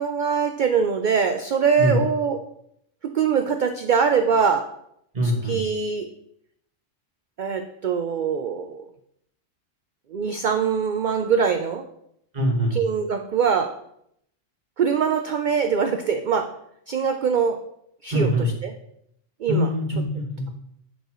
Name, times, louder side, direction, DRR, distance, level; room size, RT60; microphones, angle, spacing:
voice 1, 0.0-2.4 3.0-4.7 5.2-6.1 7.4-8.8 10.1-11.8 12.7-13.7 14.8-16.5 16.9-17.6 18.0-18.7 19.4-19.7, right 6 dB, 65° right, 6 dB, 0.4 m, -23 dB
voice 2, 5.1-5.6 12.3-12.8 18.1-18.5 19.5-20.4, equal, 35° right, -1 dB, 1.7 m, -23 dB
7.9 x 6.3 x 3.0 m, 0.73 s
omnidirectional pair, 1.3 m